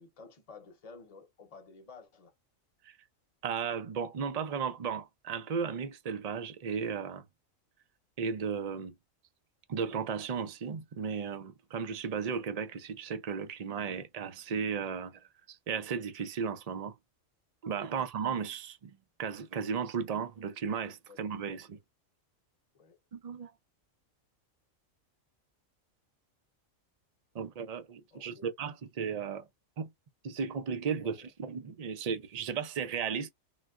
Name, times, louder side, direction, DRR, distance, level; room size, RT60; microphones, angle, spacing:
voice 1, 0.0-2.3 17.8-18.1 21.1-21.2 21.5-21.6 22.7-23.0 28.1-28.5 31.0-31.3, left 4 dB, 30° left, 0.9 m, -53 dB
voice 2, 3.4-7.2 8.2-8.9 9.7-16.9 17.6-21.8 23.1-23.5 27.3-29.5 29.8-29.9 30.2-33.3, right 6 dB, 80° right, 0.3 m, -35 dB
3.9 x 2.2 x 2.3 m
omnidirectional pair, 1.4 m